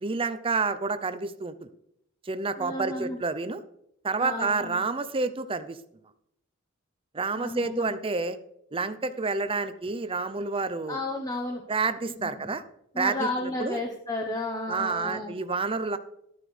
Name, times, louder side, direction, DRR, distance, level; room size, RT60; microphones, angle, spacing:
voice 1, 0.0-1.7 2.3-3.6 4.0-5.8 7.1-8.4 8.7-11.0 11.7-12.6 13.0-13.3 13.6-13.8 14.7-16.0, right 4 dB, 25° right, 12 dB, 0.6 m, -29 dB
voice 2, 2.6-3.2 4.2-4.8 7.4-7.9 10.9-11.6 12.2-12.5 12.9-15.3, left 1 dB, 20° left, 1 dB, 1.1 m, -32 dB
13.0 x 10.0 x 3.4 m, 0.76 s
head